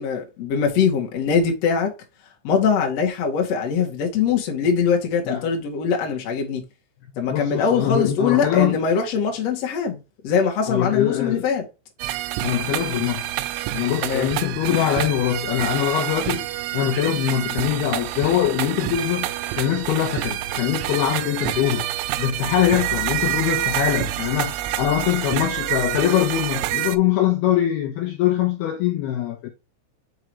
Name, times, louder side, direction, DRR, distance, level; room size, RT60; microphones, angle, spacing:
voice 1, 0.0-1.9 2.4-6.6 7.2-10.0 10.2-11.7 14.0-14.3, left 6 dB, 65° left, 1.6 m, -22 dB
voice 2, 7.3-8.8 10.7-11.5 12.4-13.3 13.7-16.5 16.7-19.3 19.5-21.9 22.2-29.5, left 11 dB, 90° left, 2.2 m, -23 dB
sound 1, 12.0-27.0, right 14 dB, 90° right, 3.2 m, -27 dB
6.7 x 4.7 x 3.1 m
omnidirectional pair, 5.6 m